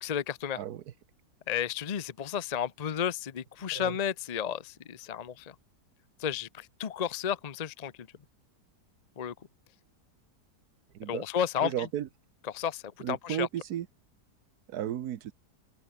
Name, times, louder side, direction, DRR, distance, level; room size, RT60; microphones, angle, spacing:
voice 1, 0.0-0.6 1.5-5.5 6.2-8.1 9.2-9.3 11.1-11.9 12.5-13.5, left 8 dB, 55° left, 0.4 m, -32 dB
voice 2, 10.9-11.2 11.6-12.1 13.0-13.9 14.7-15.3, right 11 dB, 65° right, 1.4 m, -34 dB
open air
omnidirectional pair, 1.8 m